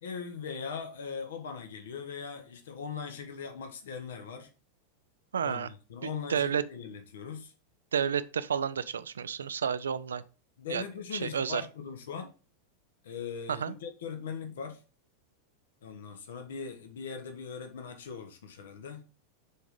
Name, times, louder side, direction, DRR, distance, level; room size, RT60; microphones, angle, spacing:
voice 1, 0.0-4.5 5.4-7.5 10.6-12.3 13.0-14.8 15.8-19.0, left 6 dB, 60° left, 1.0 m, -40 dB
voice 2, 5.3-5.7 6.3-6.6 7.9-10.2 10.7-10.8 11.2-11.6 13.5-13.7, right 7 dB, 70° right, 0.4 m, -30 dB
6.8 x 3.8 x 5.0 m
figure-of-eight pair, 90°, 0 cm